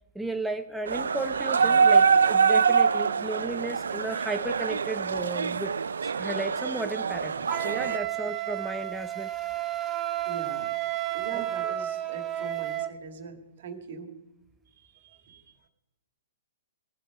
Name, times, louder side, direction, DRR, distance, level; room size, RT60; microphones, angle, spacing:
voice 1, 0.1-5.7 6.0-9.3 11.3-11.7, right 2 dB, 5° right, 6 dB, 0.6 m, -34 dB
sound 1, 0.9-8.0, right 6 dB, 80° right, 0.5 m, -24 dB
Wind instrument woodwind instrument, 7.5-12.9, right 14 dB, 20° right, 1.1 m, -32 dB
voice 2, 10.3-10.7 11.1-14.1 15.0-15.4, right 5 dB, 60° right, 6 dB, 2.1 m, -41 dB
19.5 x 7.8 x 4.9 m, 1.0 s
hypercardioid pair, 125°, 0 cm